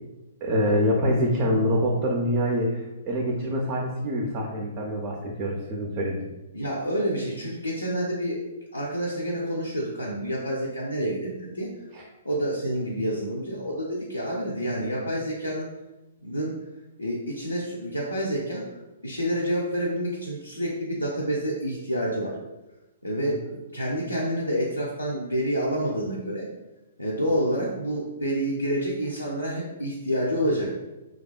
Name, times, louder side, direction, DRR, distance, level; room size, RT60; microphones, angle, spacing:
voice 1, 0.4-6.3 11.9-12.0, equal, 30° right, -1 dB, 0.4 m, -25 dB
voice 2, 6.5-8.4 8.7-11.7 12.2-15.7 16.2-16.6 17.0-18.7 19.0-22.4 23.0-26.5 27.0-30.8, equal, 85° left, -4 dB, 0.4 m, -28 dB
2.6 x 2.2 x 2.2 m, 1.0 s
figure-of-eight pair, 115°, 0 cm